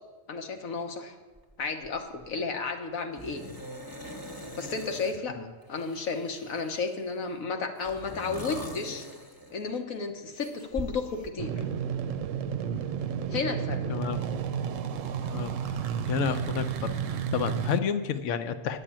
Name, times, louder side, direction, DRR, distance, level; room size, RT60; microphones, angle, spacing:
voice 1, 0.3-1.1 1.6-3.5 4.5-5.4 5.7-9.1 9.5-11.6 13.3-13.8, left 4 dB, 85° left, 5 dB, 1.6 m, -32 dB
sound 1, 1.4-1.5 1.8-2.3 3.2-5.2 5.7-7.1 7.8-9.8 10.4-11.3, equal, 20° left, 1.0 m, -42 dB
sound 2, 11.4-17.8, right 7 dB, 75° right, 0.9 m, -32 dB
voice 2, 16.1-16.9 17.3-18.8, left 7 dB, 65° left, 10 dB, 1.0 m, -30 dB
10.0 x 6.8 x 8.8 m, 1.2 s
omnidirectional pair, 1.4 m